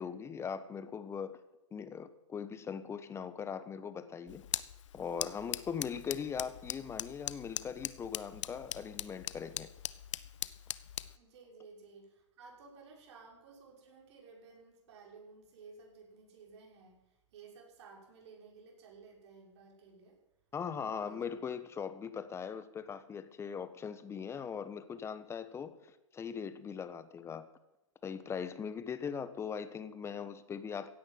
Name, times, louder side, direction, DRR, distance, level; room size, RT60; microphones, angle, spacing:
voice 1, 0.0-1.4 1.7-4.5 4.9-9.7 20.5-27.5 28.0-30.9, left 7 dB, 15° left, 12 dB, 1.2 m, -40 dB
sound 1, 4.3-11.2, left 11 dB, 70° left, 0.8 m, -41 dB
voice 2, 11.1-20.2 20.8-21.4, right 4 dB, 60° right, -1 dB, 6.4 m, -55 dB
16.5 x 10.0 x 7.9 m, 0.94 s
hypercardioid pair, 125°, 16 cm